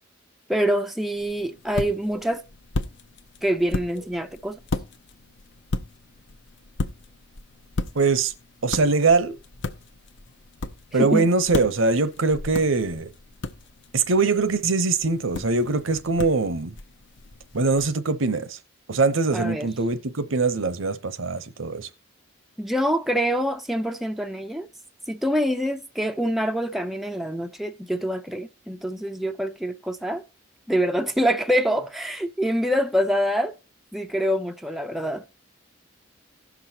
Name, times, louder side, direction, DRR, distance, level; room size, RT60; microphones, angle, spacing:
voice 1, 0.5-2.4 3.4-4.6 11.0-11.3 19.3-19.7 22.6-24.7 25.1-30.2 30.7-33.5 33.9-35.2, equal, ahead, 0.4 m, -25 dB
sound 1, 1.1-17.9, left 3 dB, 60° left, 0.7 m, -35 dB
voice 2, 7.9-8.3 8.6-9.3 10.9-13.1 13.9-16.8 17.5-18.6 18.9-21.9, right 3 dB, 75° right, 0.8 m, -22 dB
16.5 x 6.1 x 2.8 m
head